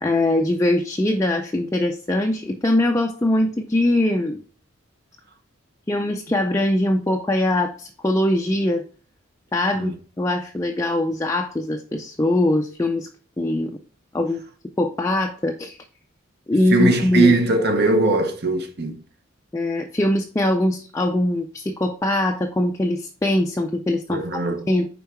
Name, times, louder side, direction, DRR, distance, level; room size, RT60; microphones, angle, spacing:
voice 1, 0.0-4.4 5.9-8.8 9.5-13.1 13.4-13.7 14.1-14.4 14.8-15.8 16.5-17.3 19.5-24.2 24.7-24.9, left 1 dB, 15° left, 0.4 m, -22 dB
voice 2, 16.7-19.0 24.1-24.6, right 2 dB, 50° right, 0.9 m, -20 dB
5.5 x 4.5 x 4.4 m
head